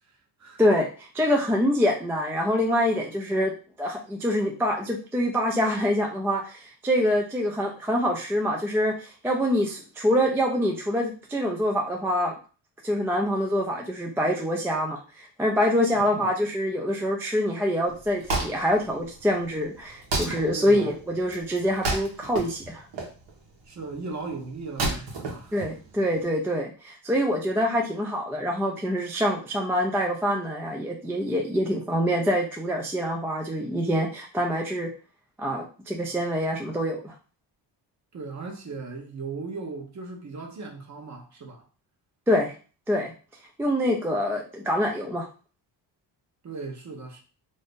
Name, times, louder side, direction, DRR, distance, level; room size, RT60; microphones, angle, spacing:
voice 1, 0.6-3.5 3.8-12.3 12.8-22.8 25.5-34.9 35.4-37.1 42.3-42.5 42.9-43.1 43.6-45.3, equal, 5° right, 0.3 m, -25 dB
voice 2, 15.9-16.2 20.5-20.9 23.7-25.6 38.1-41.6 46.4-47.2, right 4 dB, 40° right, 0.8 m, -37 dB
Wood, 17.9-26.2, right 2 dB, 75° right, 1.1 m, -33 dB
2.6 x 2.5 x 3.5 m
cardioid pair, 130°, 43 cm